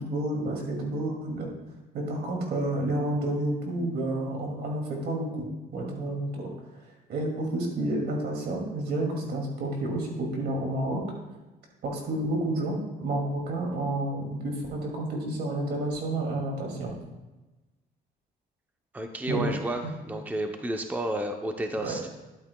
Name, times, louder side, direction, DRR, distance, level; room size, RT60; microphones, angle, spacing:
voice 1, 0.0-1.5 1.9-6.5 7.1-11.0 11.8-16.9 19.3-19.5 19.8-19.9 21.8-22.0, right 1 dB, 70° right, 0 dB, 2.3 m, -30 dB
voice 2, 18.9-22.1, right 1 dB, 10° right, 4 dB, 0.6 m, -31 dB
11.5 x 8.7 x 2.2 m, 1.1 s
cardioid pair, 95°, 18 cm